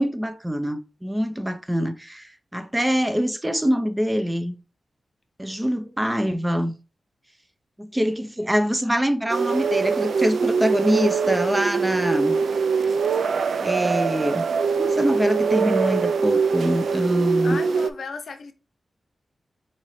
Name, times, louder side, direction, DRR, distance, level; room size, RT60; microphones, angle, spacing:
voice 1, 0.0-4.5 5.4-6.7 7.8-12.4 13.6-14.5 14.8-17.6, equal, 10° right, 0.5 m, -24 dB
sound 1, 9.3-17.9, right 5 dB, 80° right, 0.3 m, -23 dB
voice 2, 17.4-18.5, left 4 dB, 70° left, 0.6 m, -34 dB
5.3 x 2.8 x 3.1 m
cardioid pair, 55°, 0 cm